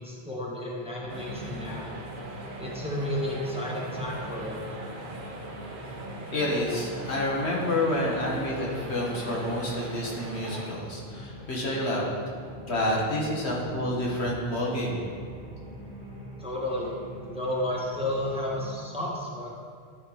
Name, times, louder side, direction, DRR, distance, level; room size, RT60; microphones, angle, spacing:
voice 1, 0.0-1.9 2.6-4.6 16.4-17.0 17.2-19.6, left 1 dB, 5° right, -4 dB, 1.2 m, -32 dB
sound 1, 1.0-18.8, right 1 dB, 55° left, 2.8 m, -43 dB
sound 2, 1.1-10.7, right 2 dB, 55° right, 1.1 m, -41 dB
voice 2, 6.3-12.0 12.7-15.0, left 1 dB, 80° left, -3 dB, 1.8 m, -28 dB
12.0 x 4.3 x 4.7 m, 2.2 s
omnidirectional pair, 1.1 m